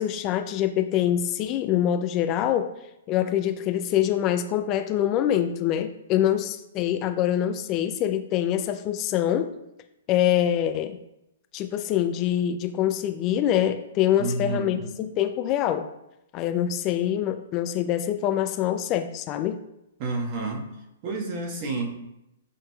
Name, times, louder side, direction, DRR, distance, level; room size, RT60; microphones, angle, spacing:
voice 1, 0.0-2.8 3.1-9.5 10.1-11.0 11.5-15.9 16.3-19.6, left 11 dB, 35° left, 9 dB, 0.3 m, -25 dB
voice 2, 14.2-14.9 20.0-20.7 21.0-22.0, right 3 dB, 40° right, 2 dB, 1.1 m, -29 dB
7.7 x 3.0 x 2.3 m, 0.88 s
hypercardioid pair, 135°, 0 cm